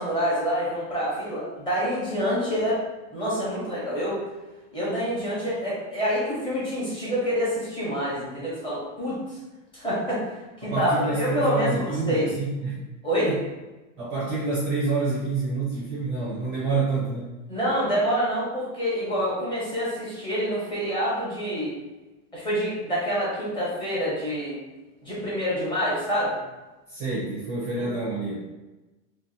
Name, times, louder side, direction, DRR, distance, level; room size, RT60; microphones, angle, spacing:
voice 1, 0.0-2.8 3.1-4.2 4.7-9.4 9.7-11.8 12.1-12.3 13.0-13.3 17.5-21.7 22.3-24.6 25.0-26.4 27.8-27.9, equal, 10° left, -8 dB, 0.7 m, -27 dB
voice 2, 10.6-12.8 13.2-13.4 14.0-17.3 26.9-28.4, right 3 dB, 15° right, -8 dB, 0.4 m, -27 dB
2.7 x 2.2 x 3.9 m, 1.1 s
supercardioid pair, 170°, 40 cm